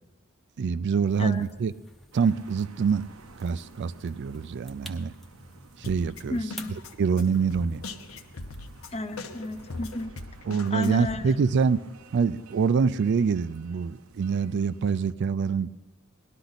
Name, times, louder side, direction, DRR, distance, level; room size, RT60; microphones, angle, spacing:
voice 1, 0.6-1.7 2.1-3.1 3.4-5.1 5.8-6.4 7.0-7.8 10.5-11.8 12.1-15.7, right 5 dB, 55° right, 0.3 m, -25 dB
sound 1, 1.1-10.0, equal, ahead, 0.8 m, -51 dB
sound 2, 2.1-15.1, right 4 dB, 90° right, 0.8 m, -53 dB
Drum kit, 5.8-11.2, left 2 dB, 70° left, 0.9 m, -41 dB
voice 2, 6.3-6.8 8.9-10.1 10.7-11.4, left 2 dB, 30° left, 0.7 m, -32 dB
18.0 x 11.5 x 4.0 m
head